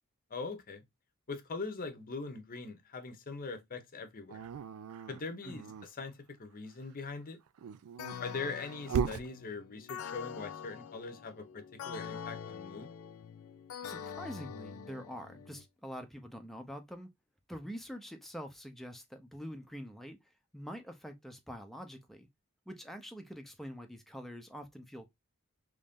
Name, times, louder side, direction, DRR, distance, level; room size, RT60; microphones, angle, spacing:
voice 1, 0.3-0.8 1.3-4.4 5.1-7.4 8.2-12.9, left 4 dB, 40° left, 0.7 m, -42 dB
Dog, 4.3-5.9 7.5-9.3, right 7 dB, 85° right, 0.3 m, -37 dB
sound 1, 8.0-15.6, left 7 dB, 75° left, 0.4 m, -45 dB
voice 2, 13.8-17.1 17.5-20.2 20.5-22.3 22.7-25.1, equal, ahead, 0.6 m, -45 dB
3.1 x 2.6 x 3.5 m
head